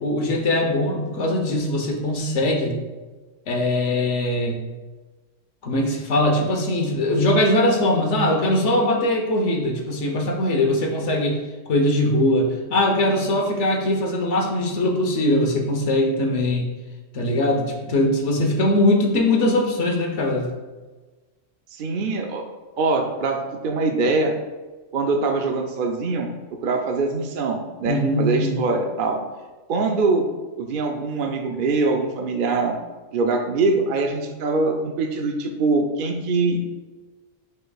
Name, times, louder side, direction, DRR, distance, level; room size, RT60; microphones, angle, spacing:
voice 1, 0.0-2.8 3.5-4.6 5.6-11.4 11.7-16.7 17.1-20.5 27.8-28.6, left 1 dB, 65° left, 1 dB, 1.3 m, -21 dB
voice 2, 21.7-22.4 22.8-23.4 23.6-24.3 24.9-26.3 26.6-29.2 29.7-30.3 30.6-32.8 33.1-36.6, right 3 dB, 55° right, 3 dB, 0.6 m, -23 dB
9.7 x 4.4 x 2.3 m, 1.3 s
omnidirectional pair, 1.3 m